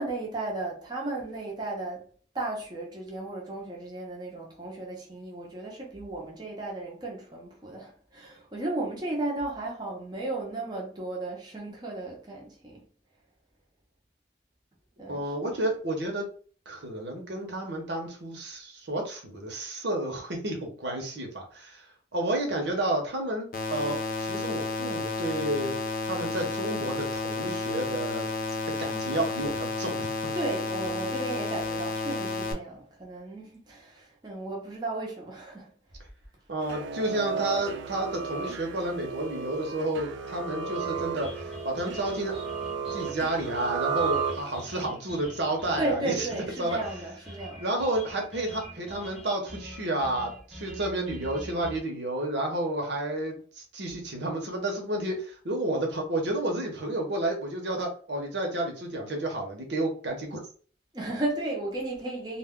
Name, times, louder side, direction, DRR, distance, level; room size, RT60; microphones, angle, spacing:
voice 1, 0.0-2.1 2.3-12.8 15.0-15.5 30.3-35.7 45.8-47.6 60.9-62.4, right 2 dB, 20° right, 0.6 m, -34 dB
voice 2, 15.1-16.3 16.7-21.9 22.1-25.8 26.1-28.3 28.8-30.1 36.5-42.4 42.9-46.3 46.6-46.8 47.6-60.4, right 1 dB, 70° right, 0.8 m, -31 dB
sound 1, 23.5-32.5, left 3 dB, 50° left, 0.5 m, -31 dB
sound 2, 36.6-44.8, right 5 dB, 90° right, 0.4 m, -33 dB
sound 3, 40.7-51.8, equal, 5° right, 0.9 m, -45 dB
2.2 x 2.2 x 3.5 m
head